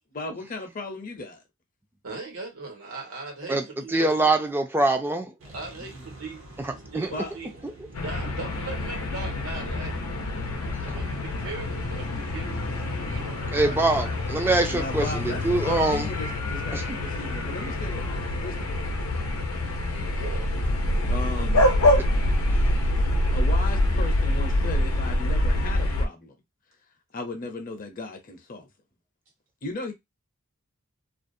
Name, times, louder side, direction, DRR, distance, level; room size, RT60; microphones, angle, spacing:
voice 1, 0.1-1.4 5.9-6.0 7.1-7.3 14.7-18.1 18.4-18.7 21.1-21.7 23.3-26.3 27.1-28.7 29.6-29.9, left 2 dB, 40° left, 0.6 m, -36 dB
voice 2, 2.0-4.1 5.5-7.5 8.0-10.4 10.8-12.6 13.0-13.8 20.1-20.8, right 3 dB, 90° right, 1.1 m, -39 dB
voice 3, 3.5-5.3 6.6-7.1 7.6-7.7 13.5-16.1 16.7-17.0, right 2 dB, 10° right, 0.3 m, -24 dB
sound 1, 5.4-23.1, right 1 dB, 70° right, 0.7 m, -45 dB
sound 2, 7.9-26.1, left 1 dB, 85° left, 0.6 m, -26 dB
2.4 x 2.0 x 2.5 m
head